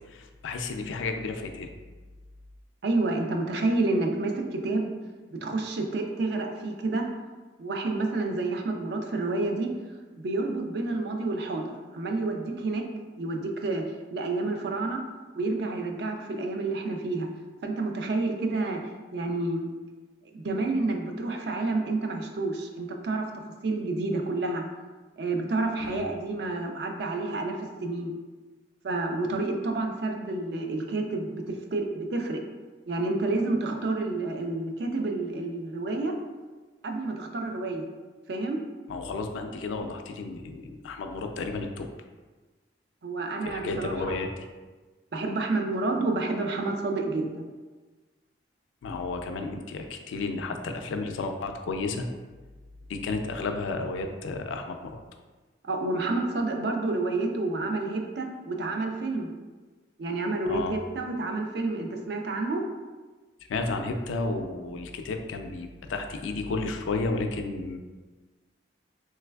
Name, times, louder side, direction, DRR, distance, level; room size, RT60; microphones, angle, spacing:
voice 1, 0.1-1.7 25.8-26.1 38.9-41.9 43.4-44.5 48.8-52.1 52.9-55.0 60.5-60.8 63.5-67.8, left 3 dB, 85° left, 5 dB, 0.3 m, -32 dB
voice 2, 2.8-4.9 5.3-7.1 7.6-9.7 10.1-12.9 13.1-13.8 14.1-15.0 15.3-17.3 17.6-18.8 19.1-19.7 20.3-23.3 23.6-24.6 25.2-28.1 28.8-31.4 31.7-32.4 32.9-36.1 36.8-37.8 38.3-38.6 43.0-44.2 45.1-47.5 55.6-59.3 60.0-62.6, right 2 dB, 60° right, 3 dB, 0.4 m, -29 dB
3.2 x 3.2 x 2.2 m, 1.3 s
head